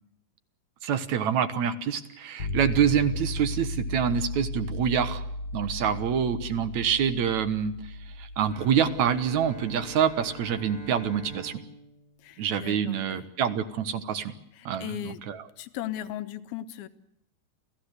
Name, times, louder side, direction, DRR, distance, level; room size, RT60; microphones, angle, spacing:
voice 1, 0.8-5.2 5.5-7.8 8.2-11.6 12.4-14.3 14.7-15.4, right 8 dB, 60° right, 12 dB, 2.1 m, -26 dB
sound 1, 2.4-11.4, left 2 dB, 40° left, 2.1 m, -36 dB
Bowed string instrument, 8.5-13.3, right 2 dB, 15° right, 3.3 m, -46 dB
voice 2, 12.2-13.3 14.5-15.3 15.6-16.9, left 12 dB, 80° left, 11 dB, 3.0 m, -37 dB
29.0 x 15.5 x 8.2 m, 0.77 s
omnidirectional pair, 4.5 m